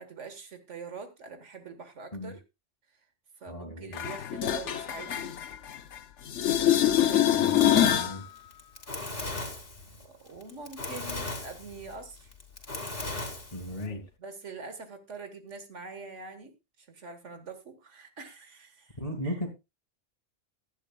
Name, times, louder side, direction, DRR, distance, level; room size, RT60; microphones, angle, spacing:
voice 1, 0.0-2.4 3.4-5.3 7.0-8.2 10.0-12.3 14.2-16.5 16.9-19.0 19.2-19.3, right 4 dB, 85° right, 8 dB, 1.9 m, -44 dB
voice 2, 3.5-4.0 7.4-8.2 13.5-14.0 19.0-19.5, equal, 30° left, 2 dB, 2.3 m, -36 dB
sound 1, 3.9-6.0 6.3-8.2 13.9-14.0, left 10 dB, 75° left, 1.2 m, -25 dB
Fire, 8.4-13.9, left 2 dB, 50° left, 2.8 m, -37 dB
16.5 x 11.0 x 2.3 m, 0.25 s
omnidirectional pair, 1.2 m